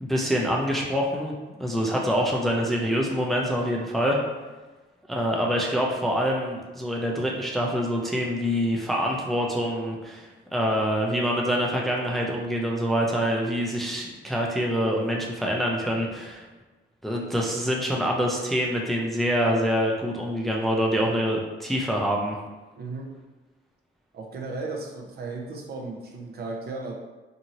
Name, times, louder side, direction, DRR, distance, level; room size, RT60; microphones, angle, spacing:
voice 1, 0.0-4.2 5.1-16.4 17.0-22.4, equal, ahead, -1 dB, 0.4 m, -25 dB
voice 2, 22.7-23.1 24.1-26.9, right 3 dB, 55° right, 1 dB, 0.6 m, -35 dB
2.7 x 2.6 x 2.9 m, 1.2 s
cardioid pair, 90°, 20 cm